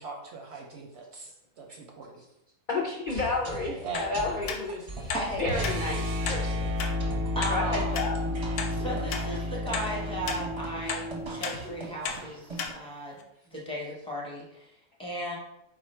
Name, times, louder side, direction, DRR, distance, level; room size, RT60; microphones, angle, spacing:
voice 1, 0.0-2.2 3.8-4.1, right 4 dB, 65° right, 1 dB, 0.7 m, -41 dB
voice 2, 2.7-6.7 7.5-8.2, left 3 dB, 55° left, -2 dB, 0.5 m, -31 dB
sound 1, 3.1-12.7, right 1 dB, 25° right, 0.6 m, -41 dB
sound 2, 3.9-4.1 4.5-4.6 5.1-5.3 5.6-5.8 6.2-6.4 6.8-6.9 7.4-7.5 7.9-8.1 8.6-8.7 9.1-9.3 9.7-9.9 10.3-10.4 10.9-11.0 11.4-11.6 12.0-12.2 12.6-12.7 13.2-13.3, left 6 dB, 90° left, 1.0 m, -33 dB
sound 3, 5.4-11.5, left 1 dB, 90° right, 1.0 m, -31 dB
voice 3, 7.3-8.0 8.7-13.2 13.5-14.7 15.0-15.4, right 1 dB, 5° left, -4 dB, 0.8 m, -35 dB
4.0 x 2.4 x 4.3 m, 0.86 s
omnidirectional pair, 1.4 m